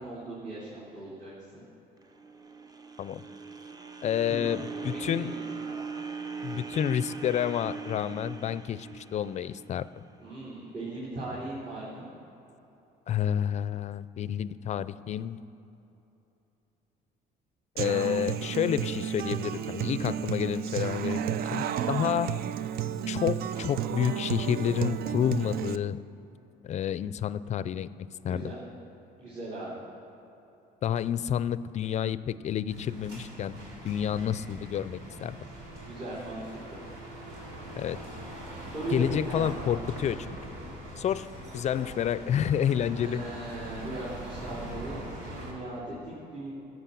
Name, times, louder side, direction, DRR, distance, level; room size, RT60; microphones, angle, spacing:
voice 1, 0.0-1.6 4.3-4.5 4.9-5.9 10.2-12.1 28.2-28.6 29.2-29.8 35.8-36.8 38.7-39.8 42.9-46.5, right 2 dB, 50° right, -8 dB, 3.4 m, -39 dB
sound 1, 2.0-10.2, right 4 dB, 25° right, 0.8 m, -40 dB
voice 2, 4.0-5.3 6.4-9.9 13.1-15.4 17.8-22.4 23.1-26.0 26.6-27.9 28.2-28.5 30.8-35.4 37.8-38.0 38.9-40.4 41.0-41.3 41.5-43.2, left 9 dB, 45° left, 16 dB, 0.4 m, -29 dB
Human voice / Acoustic guitar, 17.8-25.8, right 10 dB, 65° right, 0.4 m, -32 dB
sound 2, 32.7-45.5, right 1 dB, 90° right, 3.1 m, -42 dB
13.5 x 7.9 x 7.0 m, 3.0 s
cardioid pair, 110°, 17 cm